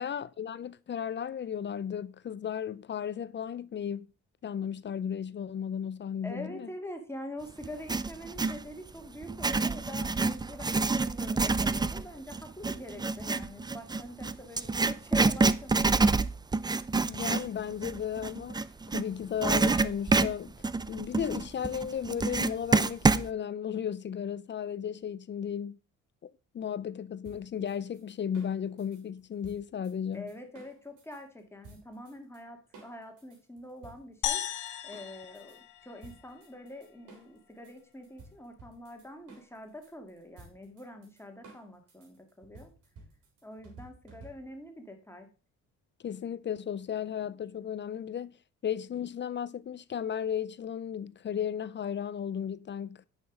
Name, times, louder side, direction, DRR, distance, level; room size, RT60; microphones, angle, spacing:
voice 1, 0.0-4.1 4.4-6.7 17.1-18.6 18.9-20.6 20.9-25.8 26.2-26.3 26.5-30.3 46.0-48.3 48.6-53.1, left 8 dB, 40° left, 0.5 m, -35 dB
voice 2, 6.2-16.1 30.1-34.4 34.8-42.7 43.4-45.3, left 1 dB, 10° left, 2.1 m, -45 dB
Writing, 7.6-8.6 9.2-19.0 19.4-23.3, right 3 dB, 15° right, 0.4 m, -27 dB
sound 1, 27.2-31.2 31.6-32.4 32.7-35.6 36.0-44.7, right 3 dB, 90° right, 3.7 m, -54 dB
sound 2, 34.2-36.7, left 11 dB, 85° left, 1.2 m, -36 dB
9.5 x 5.9 x 5.0 m
cardioid pair, 90°, 30 cm